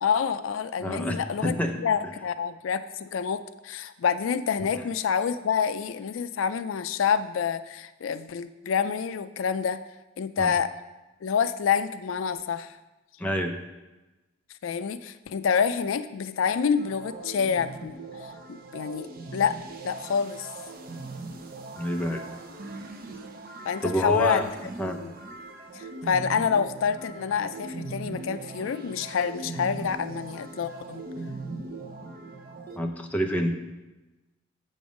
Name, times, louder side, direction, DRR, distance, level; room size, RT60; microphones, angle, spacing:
voice 1, 0.0-1.5 1.8-9.8 10.2-10.7 11.2-12.8 14.6-17.9 18.5-19.6 19.8-20.5 23.6-24.5 25.0-25.1 25.7-31.0, left 6 dB, 85° left, 12 dB, 0.4 m, -27 dB
voice 2, 0.8-1.8 10.4-10.5 13.2-13.5 21.8-22.2 23.8-24.4 24.8-25.0 32.8-33.6, equal, 10° left, 3 dB, 0.7 m, -27 dB
sound 1, 16.8-32.8, right 3 dB, 50° right, 0.8 m, -40 dB
7.7 x 5.4 x 6.2 m, 1.1 s
head